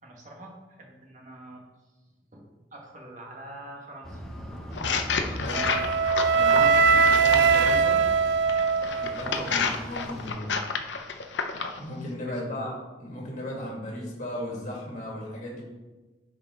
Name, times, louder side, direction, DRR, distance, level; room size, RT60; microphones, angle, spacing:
voice 1, 0.0-1.6 2.3-4.2 6.5-7.0 8.8-9.1 12.3-12.6, right 1 dB, 40° right, -1 dB, 1.7 m, -45 dB
sound 1, 4.0-10.3, equal, 5° left, 0.9 m, -39 dB
sound 2, 4.7-7.8 8.5-11.8, left 5 dB, 80° left, 0.7 m, -30 dB
voice 2, 5.3-5.6 6.3-6.7 7.2-8.0 9.0-10.6 11.8-12.7 13.0-15.6, left 1 dB, 40° left, -2 dB, 2.1 m, -35 dB
Wind instrument woodwind instrument, 5.5-9.6, right 5 dB, 70° right, 0.3 m, -21 dB
10.0 x 5.1 x 3.7 m, 1.2 s
head